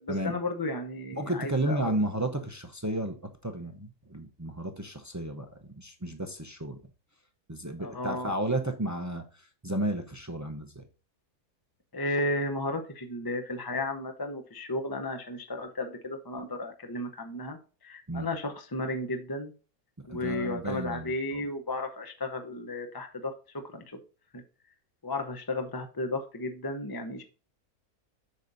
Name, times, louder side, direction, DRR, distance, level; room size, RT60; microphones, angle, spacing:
voice 1, 0.0-1.9 7.8-8.3 11.9-17.6 17.8-19.5 20.1-23.3 23.6-24.0 25.0-27.2, left 2 dB, 25° left, 0.5 m, -33 dB
voice 2, 1.2-3.2 3.4-5.5 5.8-6.8 7.5-10.9 18.1-18.3 20.1-21.4, right 1 dB, 25° right, 0.3 m, -32 dB
8.6 x 6.4 x 2.6 m
omnidirectional pair, 1.6 m